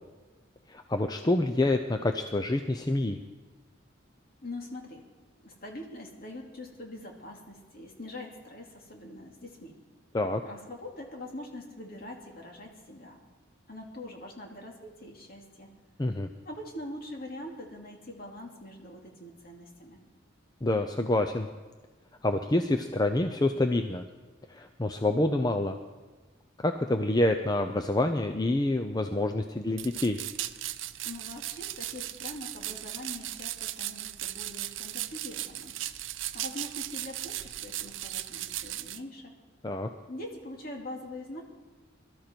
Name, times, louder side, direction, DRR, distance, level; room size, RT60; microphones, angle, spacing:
voice 1, 0.7-3.2 10.1-10.4 16.0-16.3 20.6-21.5 22.2-24.0 24.5-25.8 26.6-30.2 39.6-39.9, left 2 dB, 20° left, 6 dB, 0.6 m, -27 dB
voice 2, 4.4-5.1 5.4-9.8 10.4-13.2 13.7-15.7 16.4-20.0 31.0-35.8 36.3-39.3 40.1-41.4, left 1 dB, 50° left, 0 dB, 2.6 m, -43 dB
sound 1, 29.8-39.0, right 14 dB, 80° right, 0.6 m, -37 dB
22.5 x 13.0 x 4.5 m, 1.3 s
head